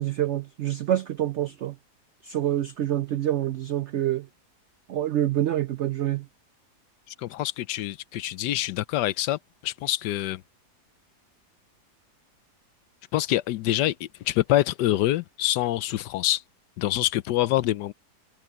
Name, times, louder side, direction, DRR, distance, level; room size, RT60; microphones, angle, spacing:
voice 1, 0.0-1.8 2.2-4.3 4.9-6.3, right 12 dB, 80° right, 0.6 m, -26 dB
voice 2, 7.2-10.4 13.1-16.4 16.8-17.9, left 14 dB, 90° left, 1.3 m, -26 dB
omnidirectional pair, 1.8 m